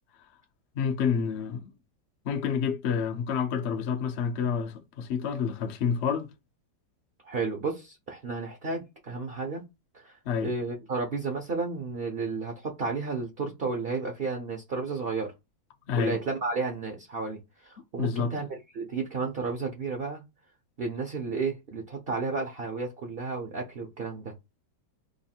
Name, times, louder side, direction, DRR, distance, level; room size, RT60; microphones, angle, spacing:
voice 1, 0.8-1.7 2.2-6.3 10.2-10.5 15.9-16.2 18.0-18.3, left 6 dB, 60° left, 0.7 m, -28 dB
voice 2, 7.2-9.6 9.9-15.3 16.0-20.2 20.8-24.3, right 4 dB, 50° right, 0.7 m, -32 dB
3.1 x 2.5 x 4.2 m
omnidirectional pair, 1.9 m